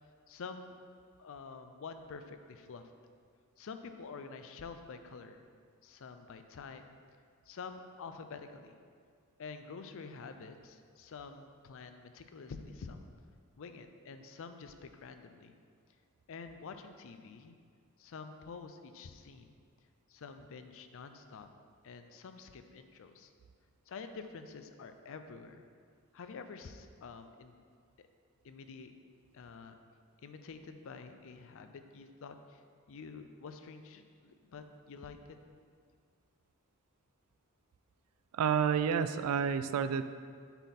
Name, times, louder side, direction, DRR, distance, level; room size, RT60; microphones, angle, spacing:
voice 1, 0.3-0.8 1.2-2.8 3.6-5.4 5.8-6.8 7.5-8.8 9.4-13.1 13.6-15.6 16.3-17.6 18.0-19.5 20.1-21.5 21.8-23.3 23.9-25.7 26.1-27.5 28.4-28.9 29.3-29.7 30.2-32.6 32.9-35.2, left 4 dB, 65° left, 8 dB, 0.5 m, -48 dB
voice 2, 38.3-40.0, right 7 dB, 85° right, 12 dB, 0.3 m, -29 dB
8.0 x 4.1 x 4.1 m, 2.1 s
head